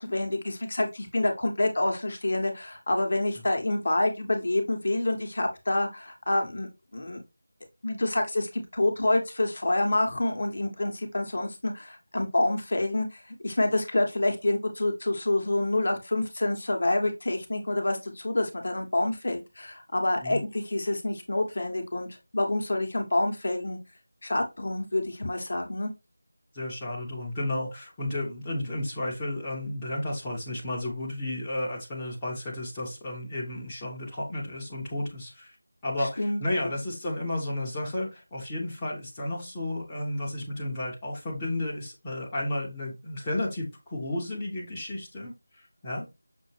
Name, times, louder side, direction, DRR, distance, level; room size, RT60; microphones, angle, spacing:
voice 1, 0.0-7.2 7.8-23.8 24.2-25.9 36.2-36.7, left 2 dB, 45° left, 3 dB, 0.7 m, -27 dB
voice 2, 26.5-35.6 35.8-46.2, left 1 dB, 10° left, -7 dB, 0.6 m, -33 dB
5.9 x 2.0 x 3.2 m, 0.24 s
figure-of-eight pair, 165°, 0 cm